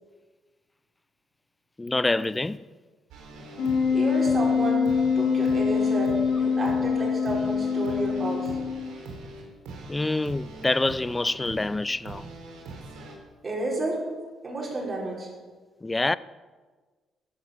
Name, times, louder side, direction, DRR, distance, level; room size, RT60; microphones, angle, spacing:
voice 1, 1.8-2.7 9.9-12.3 15.8-16.2, left 2 dB, 15° left, 0.4 m, -26 dB
sound 1, 3.1-13.2, right 3 dB, 90° right, 3.5 m, -42 dB
Wind instrument woodwind instrument, 3.6-9.0, left 6 dB, 70° left, 4.6 m, -24 dB
voice 2, 3.9-4.9 5.2-8.5 13.4-14.0 14.4-15.3, right 2 dB, 35° right, 5.6 m, -31 dB
14.5 x 9.6 x 7.0 m
cardioid pair, 90°, 0 cm